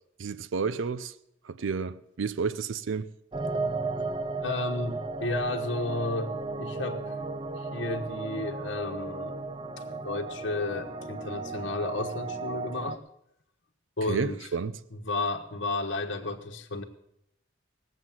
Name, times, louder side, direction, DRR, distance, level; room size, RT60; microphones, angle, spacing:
voice 1, 0.2-1.1 1.4-3.1 14.1-14.8, right 5 dB, 80° right, 0.5 m, -31 dB
sound 1, 3.3-13.0, right 3 dB, 25° right, 0.6 m, -35 dB
voice 2, 4.4-7.1 7.6-9.4 10.0-13.0 14.0-14.5 14.9-16.8, left 2 dB, 65° left, 1.2 m, -32 dB
19.5 x 7.9 x 7.3 m
head